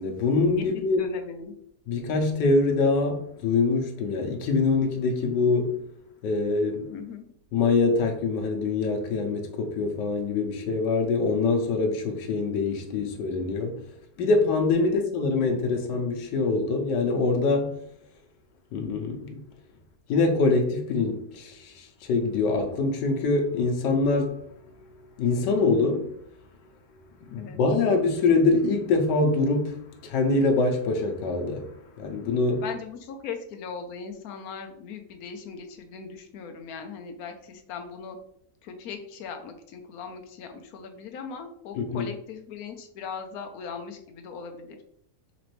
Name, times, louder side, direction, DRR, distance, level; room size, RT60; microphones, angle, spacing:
voice 1, 0.0-1.1 1.9-5.9 6.2-6.9 7.5-13.9 14.2-17.8 18.7-19.4 20.1-24.9 25.2-26.2 27.2-32.6 41.8-42.1, left 3 dB, 85° left, 1.3 m, -24 dB
voice 2, 1.0-1.5 6.9-7.3 14.8-15.0 27.4-27.6 32.6-38.2 38.6-44.8, left 6 dB, 65° left, 1.0 m, -39 dB
4.0 x 3.0 x 3.0 m
omnidirectional pair, 1.8 m